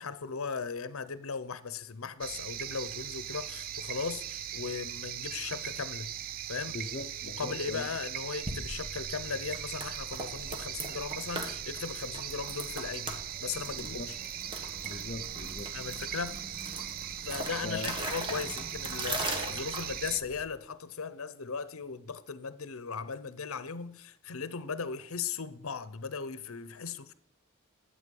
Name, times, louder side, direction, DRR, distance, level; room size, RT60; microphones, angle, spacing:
voice 1, 0.0-6.1 6.5-6.8 7.2-14.2 15.7-16.4 17.2-27.1, left 5 dB, 80° left, 0.8 m, -37 dB
sound 1, 2.2-20.2, right 11 dB, 40° right, 0.4 m, -39 dB
voice 2, 6.7-7.9 13.7-14.1 14.8-15.7 17.6-17.9, left 2 dB, 40° left, 0.7 m, -40 dB
sound 2, 8.4-20.5, right 1 dB, 20° right, 1.6 m, -40 dB
11.5 x 8.3 x 5.4 m
head